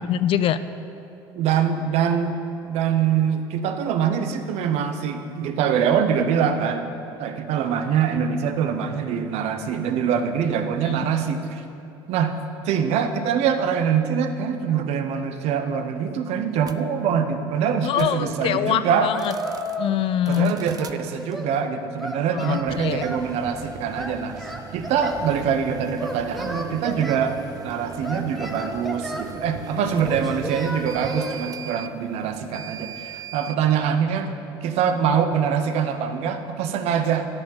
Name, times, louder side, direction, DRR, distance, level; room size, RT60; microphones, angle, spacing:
voice 1, 0.1-0.6 10.9-11.0 17.8-19.3 19.8-20.6 22.3-23.1, left 11 dB, 50° left, 13 dB, 0.4 m, -24 dB
voice 2, 1.3-6.9 7.1-11.6 12.1-12.4 12.6-19.1 20.3-27.4 27.6-34.3 34.6-37.3, right 7 dB, 60° right, 8 dB, 0.7 m, -24 dB
sound 1, 16.6-16.8 17.8-18.2 19.1-19.8 20.3-21.0 22.6-33.6, right 8 dB, 30° right, 0.4 m, -39 dB
Singing, 19.1-20.0 20.3-21.5 22.0-23.3 24.0-25.3 26.0-27.2 28.0-29.3 30.1-31.4, equal, ahead, 0.9 m, -33 dB
9.7 x 4.3 x 7.5 m, 2.9 s
hypercardioid pair, 70°, 12 cm